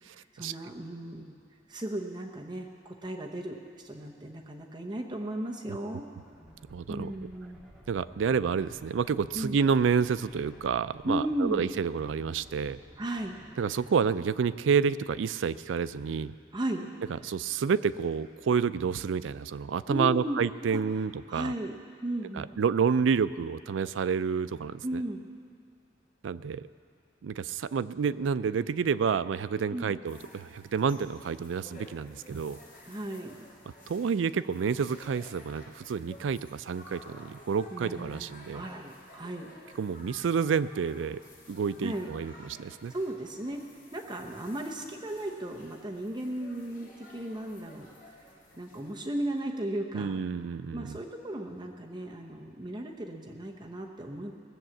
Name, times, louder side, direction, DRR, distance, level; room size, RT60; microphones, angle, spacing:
voice 1, 0.0-1.4 1.7-3.6 3.8-6.0 6.9-7.6 9.3-9.6 11.0-11.7 13.0-13.4 16.5-16.9 19.9-20.4 20.7-20.8 21.3-21.7 22.0-22.5 24.8-25.2 29.7-29.9 32.8-33.5 37.7-38.2 38.5-39.5 41.8-42.1 42.9-43.6 43.9-47.9 48.6-50.2 50.7-54.3, right 1 dB, 25° right, 1 dB, 0.8 m, -35 dB
sound 1, 6.2-13.5, equal, ahead, 1.7 m, -54 dB
voice 2, 6.7-7.1 7.9-12.8 13.6-16.3 17.2-21.5 22.3-25.0 26.2-26.7 27.2-32.6 33.9-38.6 39.8-41.2 41.5-42.9 49.9-51.0, right 6 dB, 85° right, 15 dB, 0.4 m, -29 dB
sound 2, 30.1-49.1, left 1 dB, 45° left, 3.1 m, -53 dB
18.5 x 7.2 x 7.7 m, 2.3 s
head